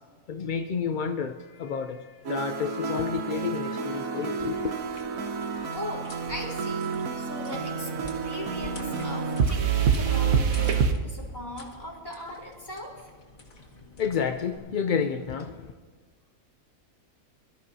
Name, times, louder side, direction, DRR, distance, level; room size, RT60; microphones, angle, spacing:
voice 1, 0.3-4.7 14.0-15.7, left 6 dB, 60° left, 7 dB, 0.5 m, -30 dB
sound 1, 2.3-10.9, right 6 dB, 75° right, 1.4 m, -28 dB
sound 2, 4.8-14.6, left 2 dB, 75° left, 2.2 m, -48 dB
voice 2, 5.7-6.9 7.2-7.9 8.2-13.1, left 1 dB, 15° left, -4 dB, 3.8 m, -39 dB
23.0 x 13.0 x 2.8 m, 1.5 s
omnidirectional pair, 1.5 m